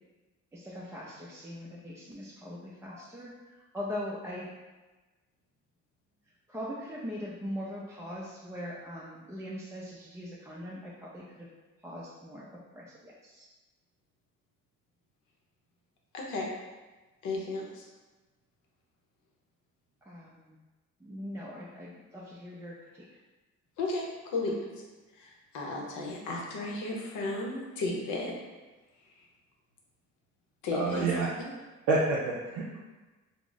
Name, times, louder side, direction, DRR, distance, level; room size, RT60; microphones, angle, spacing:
voice 1, 0.5-3.3 3.7-4.5 6.5-11.5 11.8-12.4 12.8-12.9 13.2-13.4 20.1-20.5 21.0-22.8, left 1 dB, 10° right, -6 dB, 0.4 m, -40 dB
voice 2, 16.1-16.5 17.2-17.9 23.8-24.7 25.2-28.3 30.6-31.5, left 2 dB, 85° left, -1 dB, 0.7 m, -34 dB
voice 3, 30.7-31.3 31.9-32.8, right 3 dB, 90° right, -5 dB, 0.5 m, -28 dB
2.3 x 2.0 x 3.8 m, 1.2 s
cardioid pair, 90°, 30 cm